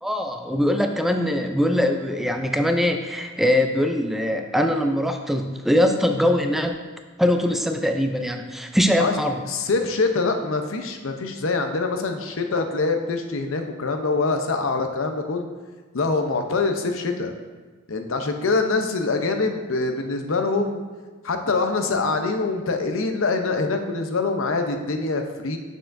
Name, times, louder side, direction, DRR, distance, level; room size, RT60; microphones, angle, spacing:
voice 1, 0.0-6.7 7.2-9.4, left 1 dB, ahead, 5 dB, 0.4 m, -22 dB
voice 2, 9.5-15.5 15.9-17.3 17.9-20.8 21.2-25.6, left 3 dB, 85° left, 5 dB, 0.7 m, -24 dB
8.8 x 6.4 x 2.6 m, 1.4 s
head